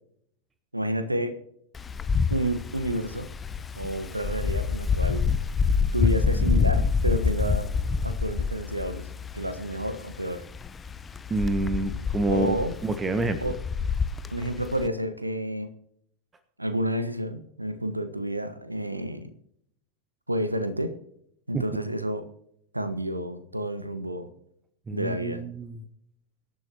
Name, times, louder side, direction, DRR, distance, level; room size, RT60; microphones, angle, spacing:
voice 1, 0.7-1.4 2.3-3.3 3.8-5.2 5.9-7.7 8.0-9.1 9.3-10.4 12.3-12.7 13.4-13.6 14.3-15.7 16.6-19.3 20.3-20.9 21.5-22.2 22.7-24.3 24.9-25.4, equal, 85° right, 10 dB, 1.3 m, -30 dB
Wind, 1.7-14.9, left 5 dB, 15° left, 0.7 m, -27 dB
voice 2, 11.3-13.4 21.5-21.6 24.9-25.8, right 2 dB, 15° right, 10 dB, 1.1 m, -27 dB
24.5 x 10.5 x 3.0 m, 0.74 s
figure-of-eight pair, 90°, 0 cm